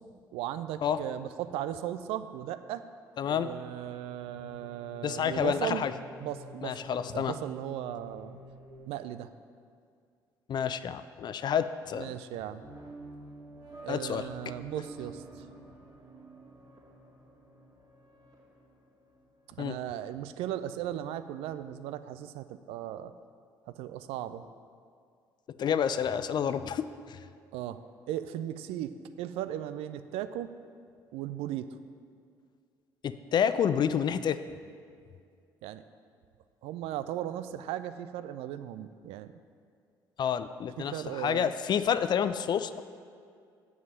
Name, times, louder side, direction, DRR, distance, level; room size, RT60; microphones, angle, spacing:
voice 1, 0.3-2.8 3.3-5.8 6.2-6.8 7.1-8.4 8.9-9.3 12.0-12.6 13.8-15.2 19.5-23.1 23.7-24.4 27.5-27.8 28.1-28.9 29.2-30.5 31.1-31.6 35.6-35.8 36.6-39.3 40.9-41.5, right 12 dB, 60° right, 12 dB, 0.4 m, -37 dB
voice 2, 3.2-3.5 5.0-5.9 6.6-7.3 10.5-12.1 13.9-14.3 19.6-19.8 25.6-27.2 33.0-34.4 40.2-42.8, left 8 dB, 40° left, 12 dB, 0.4 m, -29 dB
sound 1, 3.3-8.8, left 2 dB, 85° right, 2.0 m, -51 dB
sound 2, 12.6-19.9, right 2 dB, 35° right, 2.3 m, -50 dB
7.3 x 6.0 x 7.4 m, 2.2 s
figure-of-eight pair, 50°, 11 cm